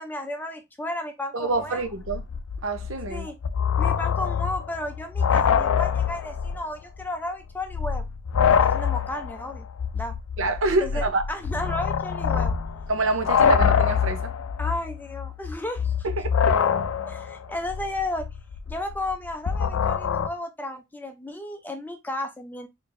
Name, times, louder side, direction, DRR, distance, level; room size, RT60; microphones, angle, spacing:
voice 1, 0.0-1.8 3.1-3.3 3.8-8.0 8.4-9.7 9.9-10.1 10.8-12.6 14.6-15.9 17.1-18.3 18.7-22.7, left 1 dB, 10° left, 0.5 m, -33 dB
voice 2, 1.3-2.2 2.6-3.3 10.4-11.2 12.9-14.3 16.0-16.5, right 3 dB, 65° right, 0.7 m, -26 dB
sound 1, 1.6-1.7 1.8-6.7 7.0-7.1 7.6-20.3, left 7 dB, 70° left, 0.4 m, -25 dB
4.3 x 2.9 x 2.5 m
head